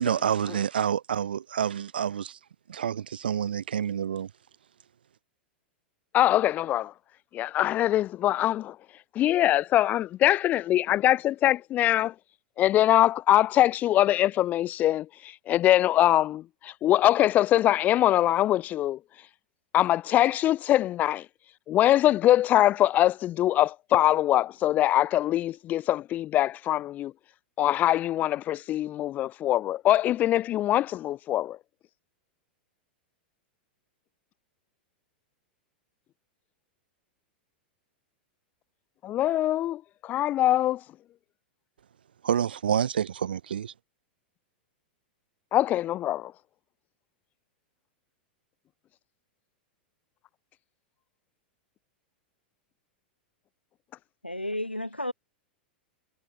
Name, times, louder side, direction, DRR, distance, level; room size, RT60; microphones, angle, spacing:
voice 1, 0.0-2.4 2.7-4.3 42.2-43.7, right 8 dB, 65° right, 2.2 m, -28 dB
voice 2, 6.1-6.9 7.3-8.8 9.1-12.1 12.6-19.0 19.7-21.3 21.7-27.1 27.6-31.6 39.0-40.8 45.5-46.3, left 13 dB, 30° left, 0.7 m, -23 dB
voice 3, 54.2-55.1, left 1 dB, 90° left, 1.9 m, -32 dB
figure-of-eight pair, 95°, 6 cm